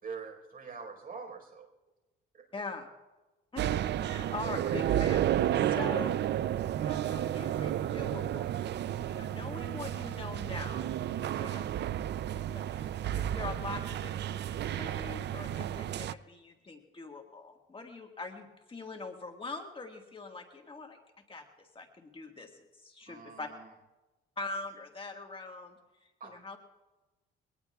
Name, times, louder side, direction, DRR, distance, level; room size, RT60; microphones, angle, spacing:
voice 1, 0.0-1.7 2.3-2.5 5.6-5.8 11.3-11.6 23.1-23.7 26.2-26.4, right 5 dB, 45° right, 4 dB, 4.6 m, -45 dB
voice 2, 2.5-2.9 3.5-6.1 6.8-8.5 9.0-11.7 12.5-21.0 21.3-23.5 24.4-26.6, left 3 dB, 25° left, 2 dB, 1.7 m, -43 dB
sound 1, 3.6-16.1, right 11 dB, 60° right, 0.5 m, -32 dB
23.5 x 18.5 x 2.4 m, 1.1 s
cardioid pair, 90°, 20 cm